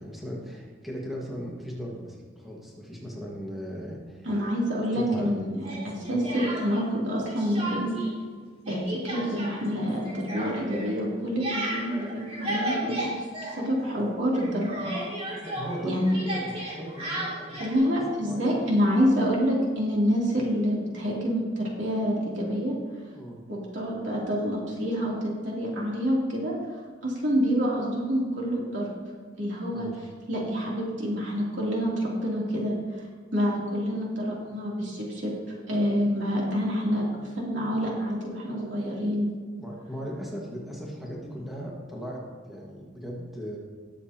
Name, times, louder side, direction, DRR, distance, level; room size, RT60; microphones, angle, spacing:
voice 1, 0.0-4.3 4.9-5.6 15.4-18.6 23.1-23.4 29.7-29.9 39.6-43.6, equal, ahead, -4 dB, 1.6 m, -38 dB
voice 2, 4.2-7.9 8.6-12.9 13.6-14.9 15.8-16.2 17.6-22.8 23.5-28.9 29.4-29.9 30.3-33.0 33.3-35.3 35.7-37.1 37.4-39.3, equal, 70° right, -4 dB, 2.9 m, -27 dB
Speech, 5.6-7.0 7.3-8.1 8.4-14.1 14.3-17.8, right 1 dB, 35° right, 3.1 m, -34 dB
19.0 x 7.2 x 2.9 m, 1.5 s
head